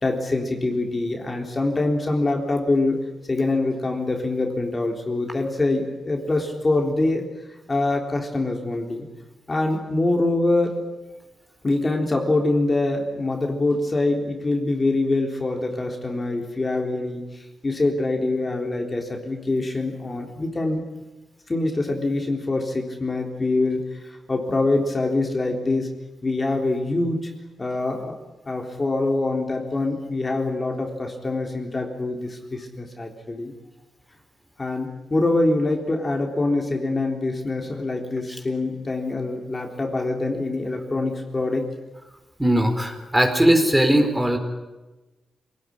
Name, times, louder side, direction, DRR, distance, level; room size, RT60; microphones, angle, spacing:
voice 1, 0.0-7.3 7.7-9.1 9.5-10.8 11.6-20.8 21.5-25.9 26.2-27.3 27.6-28.2 28.5-33.5 34.6-41.7, left 2 dB, 25° left, 2 dB, 3.7 m, -24 dB
voice 2, 42.4-44.4, right 1 dB, 10° right, 5 dB, 4.1 m, -19 dB
26.0 x 19.0 x 10.0 m, 1.1 s
cardioid pair, 105°, 0 cm